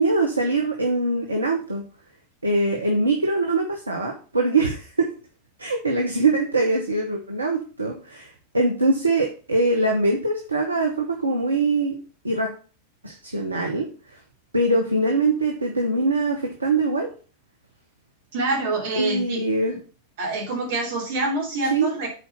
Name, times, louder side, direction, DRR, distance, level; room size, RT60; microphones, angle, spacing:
voice 1, 0.0-1.8 2.4-5.1 5.6-12.0 12.2-12.5 13.0-14.2 14.5-17.1 19.0-19.7 21.7-21.9, right 2 dB, 80° right, 2 dB, 1.0 m, -23 dB
voice 2, 18.3-19.4 20.2-22.1, right 2 dB, 55° right, -3 dB, 3.0 m, -26 dB
7.7 x 4.5 x 5.6 m, 0.38 s
figure-of-eight pair, 90°, 0 cm